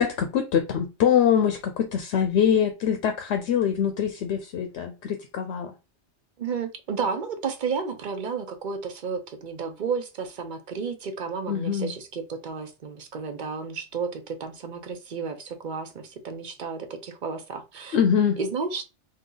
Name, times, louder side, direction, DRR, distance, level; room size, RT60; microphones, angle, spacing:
voice 1, 0.0-5.7 11.5-11.9 17.9-18.4, left 8 dB, 75° left, 0.8 m, -23 dB
voice 2, 6.4-18.0 18.4-18.8, right 5 dB, 50° right, 0.8 m, -32 dB
3.6 x 2.7 x 3.8 m
omnidirectional pair, 1.2 m